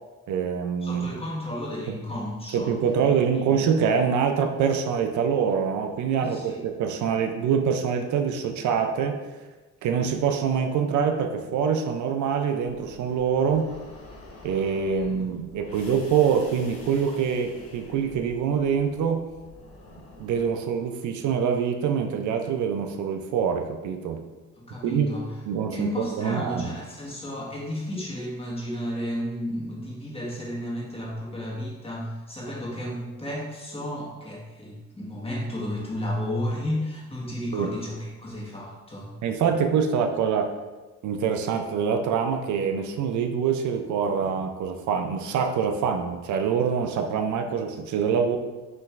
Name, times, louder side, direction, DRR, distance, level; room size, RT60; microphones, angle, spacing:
voice 1, 0.3-1.1 2.5-9.2 9.8-13.7 14.4-19.2 20.2-24.2 24.8-25.1 25.5-26.7 37.5-37.7 39.2-40.5 41.0-48.4, right 7 dB, 75° right, 5 dB, 0.5 m, -25 dB
voice 2, 0.8-3.0 3.4-3.5 6.2-6.6 14.9-15.2 24.6-25.3 25.7-39.1, left 1 dB, 20° left, -4 dB, 1.4 m, -33 dB
sound 1, 12.6-20.5, left 2 dB, 50° left, 1.0 m, -47 dB
5.6 x 3.0 x 2.4 m, 1.2 s
cardioid pair, 90°, 30 cm